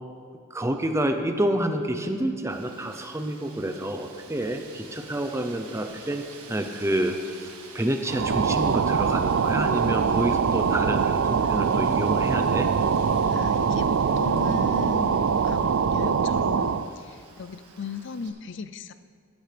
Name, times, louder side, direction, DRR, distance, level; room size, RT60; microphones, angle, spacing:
voice 1, 0.5-7.5 7.7-12.7, right 1 dB, 15° right, 6 dB, 0.6 m, -28 dB
Wind, 2.5-18.3, right 4 dB, 85° right, 1.6 m, -48 dB
sound 1, 8.1-16.9, right 6 dB, 60° right, 0.4 m, -23 dB
voice 2, 13.3-18.9, left 5 dB, 55° left, 12 dB, 0.5 m, -37 dB
17.5 x 12.0 x 3.4 m, 2.2 s
head